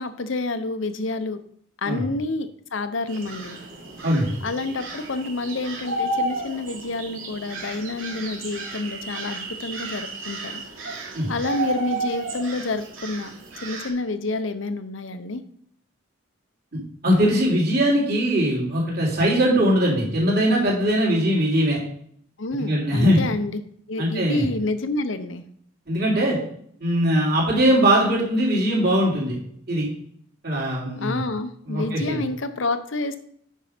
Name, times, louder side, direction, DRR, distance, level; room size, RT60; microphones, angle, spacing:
voice 1, 0.0-1.4 1.8-3.6 4.4-10.6 11.3-13.3 13.6-15.4 22.4-23.6 23.9-25.4 31.0-33.2, left 2 dB, 70° left, 11 dB, 0.8 m, -28 dB
sound 1, 3.1-13.9, right 2 dB, 85° right, 2.7 m, -33 dB
voice 2, 4.0-4.3 11.1-11.3 16.7-21.8 22.5-23.2 24.0-24.4 25.9-26.4 26.8-29.4 29.7-29.9 30.4-31.2 31.6-32.2, equal, 50° right, -3 dB, 3.4 m, -21 dB
9.2 x 5.5 x 5.1 m, 0.64 s
head